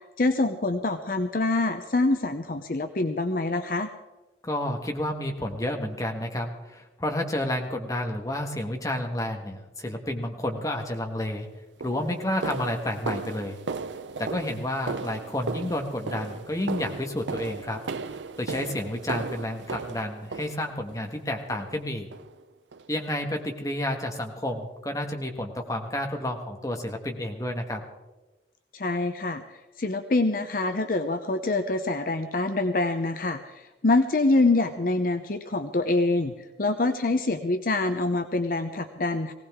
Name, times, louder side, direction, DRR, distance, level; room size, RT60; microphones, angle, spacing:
voice 1, 0.2-3.9 28.7-29.4 29.8-36.3 36.6-39.3, left 2 dB, 50° left, 8 dB, 0.7 m, -25 dB
voice 2, 4.4-11.5 11.8-13.6 14.2-17.8 18.4-22.1 22.9-27.8, left 1 dB, 20° left, 3 dB, 1.4 m, -30 dB
sound 1, 11.1-11.3 11.8-21.0 21.5-21.8 22.1-22.3 22.7-22.9 23.3-23.4 23.9-24.0, right 4 dB, 90° right, 0.6 m, -36 dB
19.0 x 17.5 x 3.6 m, 1.1 s
head